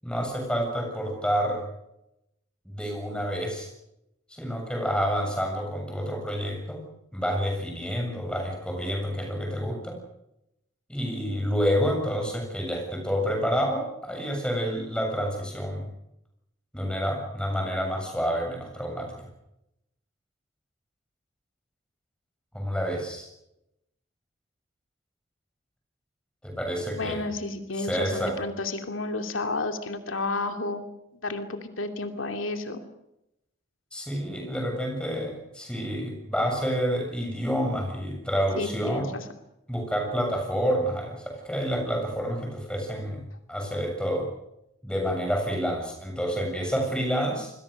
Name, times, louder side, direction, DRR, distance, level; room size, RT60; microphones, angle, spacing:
voice 1, 0.0-1.6 2.7-3.7 4.3-6.8 7.1-10.0 10.9-15.9 16.7-19.3 22.5-23.3 26.4-27.2 27.7-28.4 33.9-39.1 39.7-44.3 44.8-47.5, equal, 5° left, 2 dB, 7.1 m, -28 dB
voice 2, 26.9-30.8 31.2-32.8 38.6-39.2, left 2 dB, 85° left, 6 dB, 2.8 m, -31 dB
28.0 x 21.5 x 6.7 m, 0.85 s
head